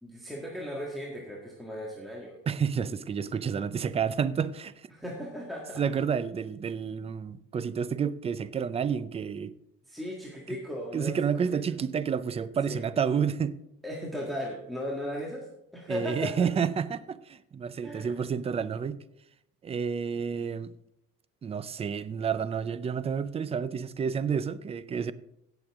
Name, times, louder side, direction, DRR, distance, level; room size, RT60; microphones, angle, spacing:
voice 1, 0.0-2.4 4.9-5.8 9.8-11.6 12.7-12.9 13.8-15.5 15.7-16.5 17.8-18.2, equal, ahead, 1.7 m, -37 dB
voice 2, 2.5-4.9 5.8-9.5 10.9-13.6 15.9-19.0 19.6-20.7 21.4-25.1, right 7 dB, 20° right, 0.4 m, -30 dB
17.0 x 7.1 x 3.5 m
cardioid pair, 130°, 33 cm